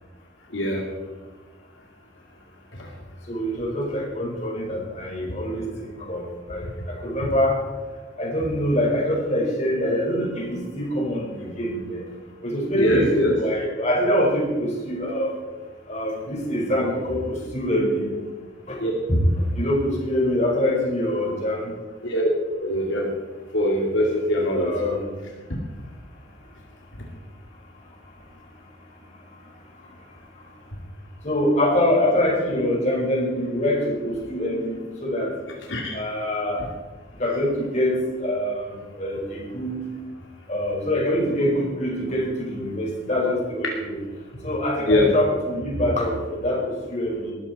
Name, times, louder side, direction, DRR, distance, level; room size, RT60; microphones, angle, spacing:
voice 1, 0.5-0.8 2.8-2.9 12.8-13.3 18.8-18.9 22.0-22.3 22.6-23.1 23.5-24.7 35.7-36.0 43.6-43.7 44.9-45.1, left 1 dB, 70° left, -1 dB, 2.5 m, -22 dB
voice 2, 3.3-7.6 8.2-12.0 12.4-15.3 15.9-18.1 18.7-18.8 19.1-21.7 24.5-25.1 31.2-35.3 35.9-36.6 37.2-39.8 40.5-44.0 44.4-47.3, left 1 dB, 35° left, -2 dB, 4.9 m, -24 dB
20.0 x 14.0 x 4.2 m, 1.3 s
head